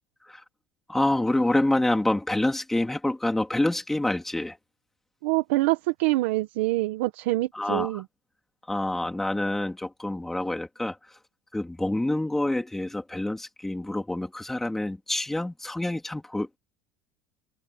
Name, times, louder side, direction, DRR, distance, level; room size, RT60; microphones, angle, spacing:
voice 1, 0.9-4.6 7.5-8.0 8.7-11.0 11.5-16.6, left 1 dB, 5° left, 3.1 m, -27 dB
voice 2, 5.2-8.0, right 19 dB, 85° right, 1.5 m, -25 dB
open air
cardioid pair, 170°, 6 cm